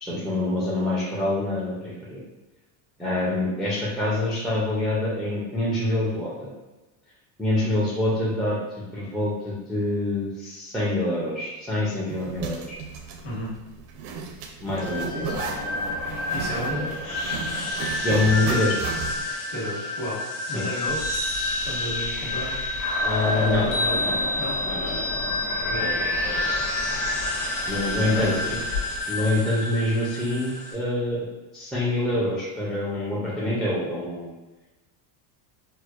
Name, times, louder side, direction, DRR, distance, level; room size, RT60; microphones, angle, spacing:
voice 1, 0.0-2.2 3.0-6.5 7.4-8.6 8.9-12.6 14.6-15.4 16.7-16.9 17.8-18.8 20.5-20.6 23.0-23.6 24.0-24.1 24.6-26.0 26.2-26.6 27.7-28.6 29.1-31.3 31.5-34.3, left 2 dB, ahead, -8 dB, 0.3 m, -26 dB
Zipper (clothing), 12.1-19.3, right 5 dB, 85° right, 0.7 m, -35 dB
voice 2, 13.2-13.5 16.3-16.9 19.5-20.2 20.5-21.0 21.6-22.5 23.2-24.5 25.7-25.8 28.0-28.6, equal, 50° left, -5 dB, 1.4 m, -33 dB
sound 1, 14.8-30.7, left 1 dB, 30° left, 0.8 m, -29 dB
Chime, 20.9-29.0, left 2 dB, 90° left, 1.4 m, -32 dB
4.5 x 2.1 x 2.4 m, 1.1 s
cardioid pair, 145°, 50 cm